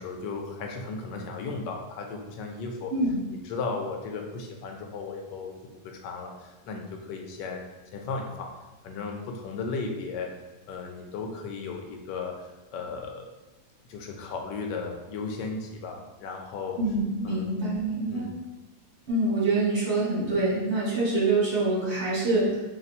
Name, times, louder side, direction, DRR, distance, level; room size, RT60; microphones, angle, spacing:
voice 1, 0.0-2.9 3.4-5.5 5.8-7.6 7.9-8.5 8.8-10.3 10.7-12.3 12.7-13.2 13.9-16.8 17.2-17.6 18.1-18.3, left 4 dB, 80° left, 2 dB, 1.2 m, -35 dB
voice 2, 16.8-18.3 19.1-22.6, right 2 dB, 40° right, -7 dB, 1.7 m, -25 dB
5.3 x 3.0 x 2.5 m, 1.1 s
omnidirectional pair, 1.8 m